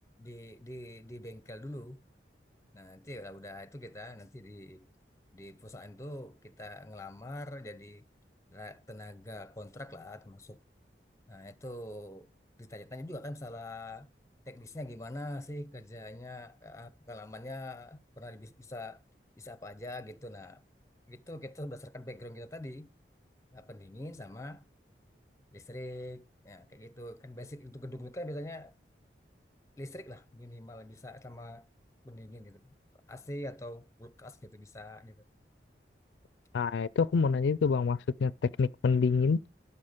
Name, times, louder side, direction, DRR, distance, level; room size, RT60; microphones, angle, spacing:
voice 1, 0.2-2.0 2.7-4.9 5.3-8.1 8.5-10.6 11.3-12.3 12.6-14.1 14.5-19.0 19.4-20.6 21.1-22.9 23.5-24.7 25.5-28.7 29.8-31.7 32.0-32.7 33.1-35.2, left 1 dB, 15° left, 0.6 m, -44 dB
voice 2, 36.5-39.5, left 5 dB, 85° left, 0.4 m, -27 dB
12.0 x 5.7 x 5.1 m
head